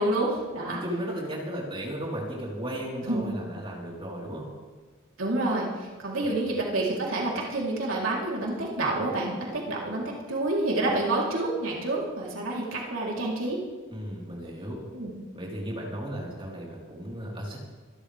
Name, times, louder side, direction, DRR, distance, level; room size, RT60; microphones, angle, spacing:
voice 1, 0.0-0.8 3.0-3.2 5.2-13.6 14.9-15.1, right 2 dB, 85° right, -4 dB, 3.6 m, -28 dB
voice 2, 0.7-4.4 6.2-6.3 13.9-14.8 15.3-17.6, equal, 25° right, -4 dB, 4.2 m, -35 dB
26.5 x 12.0 x 3.5 m, 1.3 s
head